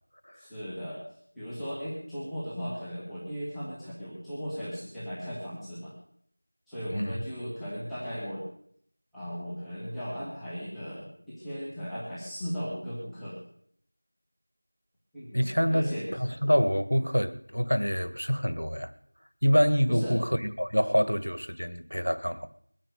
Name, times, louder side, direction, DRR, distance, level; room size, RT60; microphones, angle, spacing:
voice 1, 0.4-1.0 1.3-5.9 6.7-8.4 9.1-13.4 15.1-16.1 19.9-20.2, equal, ahead, -14 dB, 0.8 m, -37 dB
voice 2, 15.3-18.9 19.4-22.5, equal, 85° left, 12 dB, 1.6 m, -26 dB
21.5 x 9.2 x 6.7 m, 0.67 s
figure-of-eight pair, 180°, 0 cm